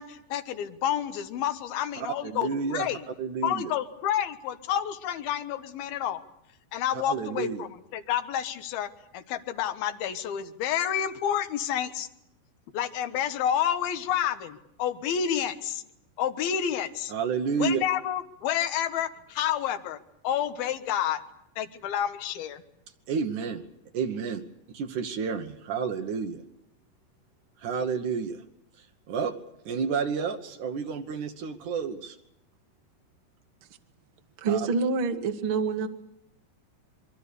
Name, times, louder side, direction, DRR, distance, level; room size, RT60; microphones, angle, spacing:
voice 1, 0.0-3.0 3.4-6.2 6.7-12.1 12.7-15.8 16.2-17.1 17.6-21.2 21.6-22.6, left 10 dB, 65° left, 9 dB, 2.9 m, -29 dB
voice 2, 2.2-2.9 3.2-3.7 6.9-7.7 17.1-17.8 23.1-23.6 23.9-24.4 24.8-26.4 27.6-28.4 29.1-29.3 29.7-32.2 34.5-34.6, right 6 dB, 65° right, 6 dB, 2.0 m, -30 dB
voice 3, 34.4-35.9, right 4 dB, 50° right, 5 dB, 1.6 m, -26 dB
27.0 x 22.5 x 6.8 m, 0.78 s
omnidirectional pair, 5.1 m